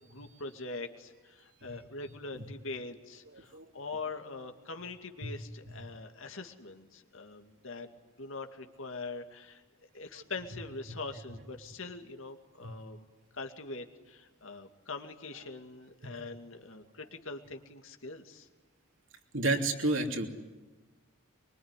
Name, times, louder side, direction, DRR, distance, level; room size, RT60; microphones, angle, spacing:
voice 1, 0.0-7.9 8.2-9.6 9.9-13.1 13.3-18.5, left 3 dB, 65° left, 5 dB, 2.3 m, -43 dB
voice 2, 3.3-3.7 5.2-5.3 10.1-10.2 12.6-12.7 16.0-16.2 19.3-20.3, right 2 dB, 60° right, 3 dB, 3.2 m, -31 dB
24.0 x 23.5 x 9.9 m, 1.2 s
head